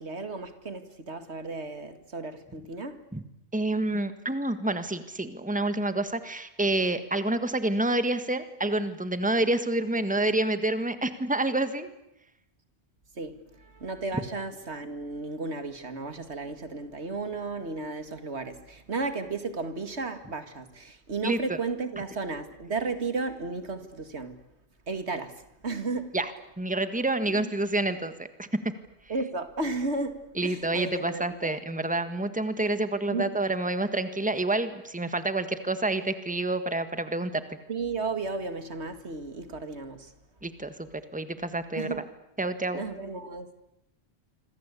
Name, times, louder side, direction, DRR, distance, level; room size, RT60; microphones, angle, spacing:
voice 1, 0.0-3.0 13.1-24.4 24.9-26.2 27.3-27.5 29.1-31.6 33.1-33.4 37.7-40.1 41.7-42.0 42.7-43.5, right 3 dB, 80° right, 2.4 m, -34 dB
voice 2, 3.5-11.9 21.2-21.4 26.1-26.3 26.6-28.5 30.4-37.4 40.4-42.0 42.4-42.8, right 2 dB, 5° right, 1.6 m, -28 dB
26.0 x 26.0 x 8.4 m
omnidirectional pair, 1.1 m